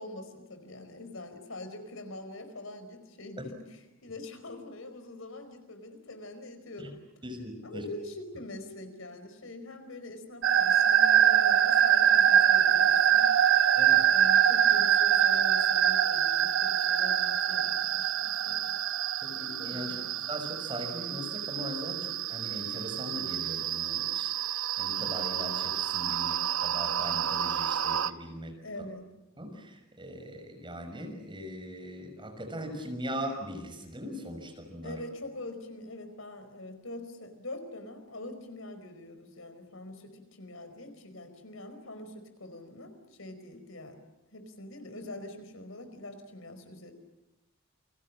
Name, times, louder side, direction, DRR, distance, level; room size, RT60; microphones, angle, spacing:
voice 1, 0.0-7.0 7.6-13.3 14.1-18.8 19.7-20.1 28.6-29.1 34.8-44.0 44.3-46.9, left 2 dB, 75° left, 8 dB, 4.8 m, -44 dB
voice 2, 7.2-7.9 13.8-14.0 19.2-19.9 20.3-28.5 29.4-35.0, equal, 25° right, 4 dB, 6.1 m, -40 dB
sound 1, 10.4-28.1, right 9 dB, 70° right, 1.0 m, -25 dB
29.0 x 25.0 x 7.5 m, 0.95 s
head